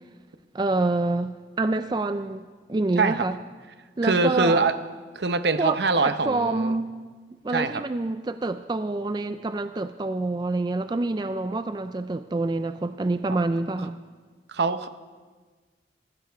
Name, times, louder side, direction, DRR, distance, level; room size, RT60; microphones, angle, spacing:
voice 1, 0.5-3.3 4.0-4.7 5.6-6.9 7.4-14.0, right 2 dB, 25° right, 10 dB, 0.3 m, -27 dB
voice 2, 3.0-3.3 4.0-4.7 5.1-6.8 7.5-7.8 14.5-14.9, right 4 dB, 70° right, 11 dB, 0.7 m, -23 dB
19.0 x 15.0 x 3.5 m, 1.4 s
head